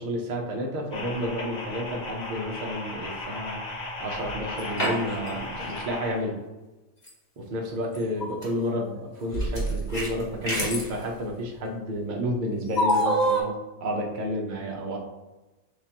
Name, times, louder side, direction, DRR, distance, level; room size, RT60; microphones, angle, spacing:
voice 1, 0.0-3.6 4.0-6.4 7.4-15.0, equal, 45° right, 0 dB, 0.6 m, -31 dB
sound 1, 0.9-6.1, left 2 dB, 50° left, 1.1 m, -36 dB
sound 2, 4.3-5.3 5.6-5.7 7.1-7.2 7.9-8.5 9.3-10.9 12.8-13.4, right 1 dB, 30° left, 1.2 m, -26 dB
6.5 x 2.5 x 2.9 m, 1.1 s
omnidirectional pair, 1.8 m